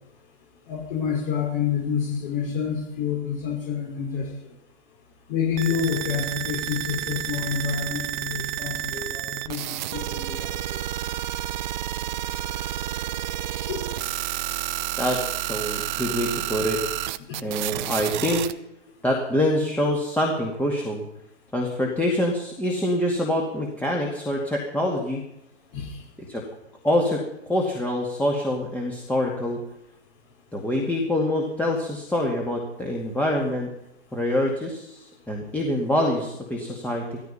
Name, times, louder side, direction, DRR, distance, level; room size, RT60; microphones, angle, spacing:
voice 1, 0.7-4.3 5.3-10.8 13.4-13.8 17.3-17.4 25.7-26.0, left 7 dB, 50° left, -2 dB, 5.4 m, -28 dB
sound 1, 5.6-18.5, right 13 dB, 40° right, 0.9 m, -30 dB
voice 2, 15.0-16.8 17.4-18.5 19.0-21.0 21.5-25.2 26.3-26.4 26.8-27.2 27.5-29.6 30.5-33.7 34.1-37.2, left 1 dB, 5° left, -1 dB, 2.2 m, -25 dB
16.5 x 14.0 x 5.6 m, 0.84 s
hypercardioid pair, 130°, 35 cm